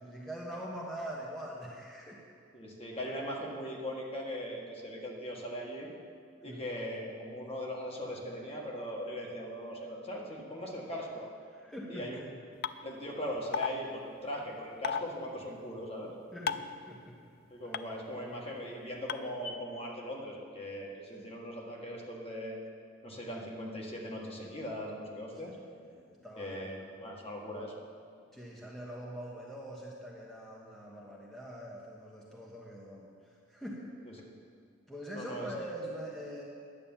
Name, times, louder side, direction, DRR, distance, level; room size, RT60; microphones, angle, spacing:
voice 1, 0.0-2.2 6.5-6.6 11.5-12.3 16.3-17.3 21.1-21.3 25.5-25.7 25.9-26.7 28.3-33.9 34.9-36.4, right 1 dB, ahead, -4 dB, 1.2 m, -43 dB
voice 2, 2.5-5.9 6.4-11.3 11.9-12.2 12.8-16.1 17.5-22.6 23.0-25.6 26.4-27.8 34.1-34.2 35.1-35.5, equal, 30° left, -2 dB, 1.7 m, -40 dB
sound 1, 12.6-12.7 13.5-13.7 14.8-15.0 16.5-16.7 17.7-17.8 19.1-19.2, left 7 dB, 55° left, 0.4 m, -31 dB
10.5 x 8.5 x 7.2 m, 2.2 s
head